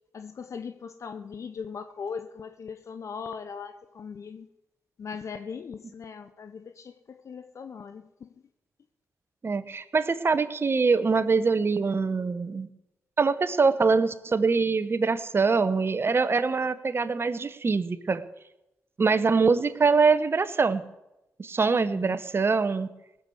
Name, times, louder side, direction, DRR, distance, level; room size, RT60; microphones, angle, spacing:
voice 1, 0.1-4.5 5.0-8.3 21.7-22.2, left 6 dB, 60° left, 0.7 m, -39 dB
voice 2, 9.4-12.7 13.2-18.2 19.0-20.8 21.4-22.9, right 4 dB, 45° right, 1.0 m, -24 dB
18.0 x 7.1 x 7.9 m
supercardioid pair, 45°, 6 cm